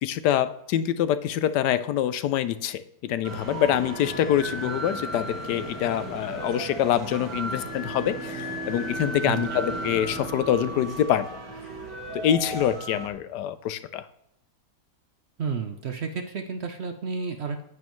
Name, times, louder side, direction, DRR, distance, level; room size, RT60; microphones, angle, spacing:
voice 1, 0.0-11.3 12.2-14.0, left 10 dB, 90° left, 14 dB, 1.2 m, -25 dB
sound 1, 3.2-13.1, right 1 dB, 90° right, 2.5 m, -35 dB
Bowed string instrument, 7.1-12.1, right 4 dB, 15° right, 0.4 m, -40 dB
voice 2, 9.2-9.6 15.4-17.6, right 5 dB, 55° right, 6 dB, 0.7 m, -31 dB
9.4 x 9.1 x 3.1 m, 0.76 s
omnidirectional pair, 1.8 m